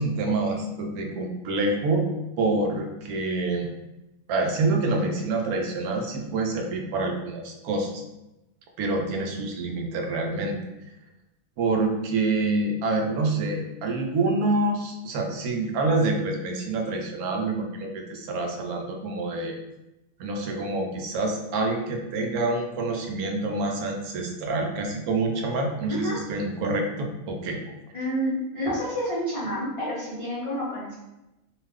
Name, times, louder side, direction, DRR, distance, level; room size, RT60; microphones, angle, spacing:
voice 1, 0.0-2.1 2.4-3.7 4.3-8.0 8.8-10.6 11.6-19.6 20.2-27.6, right 2 dB, 90° right, 3 dB, 1.1 m, -27 dB
voice 2, 27.9-30.9, equal, 35° left, -10 dB, 0.6 m, -29 dB
2.7 x 2.3 x 3.3 m, 0.96 s
omnidirectional pair, 1.5 m